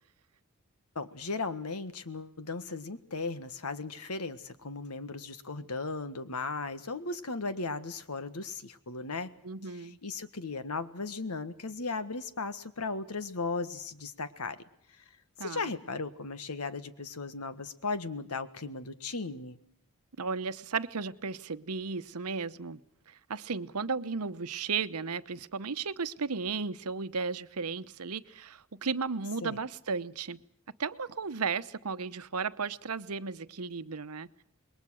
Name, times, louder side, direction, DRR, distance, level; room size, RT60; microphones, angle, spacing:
voice 1, 0.9-9.3 9.7-14.6 14.9-15.0 15.4-19.6 29.4-29.6, left 3 dB, 85° left, 11 dB, 1.6 m, -36 dB
voice 2, 9.4-10.0 15.4-15.6 20.2-22.8 23.1-30.4 30.8-34.3, right 5 dB, 85° right, 13 dB, 1.0 m, -34 dB
27.0 x 21.5 x 6.4 m, 0.69 s
head